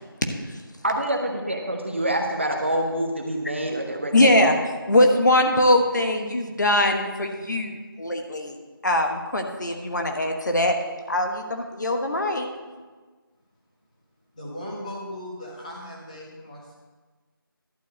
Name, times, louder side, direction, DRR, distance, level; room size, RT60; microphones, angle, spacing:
voice 1, 0.8-4.5, right 1 dB, 30° right, 2 dB, 0.8 m, -26 dB
voice 2, 4.1-4.5 4.9-8.5 8.8-10.8 11.1-12.5, left 1 dB, 50° left, 4 dB, 1.2 m, -21 dB
voice 3, 14.3-16.8, left 1 dB, 20° left, -4 dB, 1.7 m, -37 dB
11.5 x 4.7 x 7.9 m, 1.4 s
figure-of-eight pair, 175°, 12 cm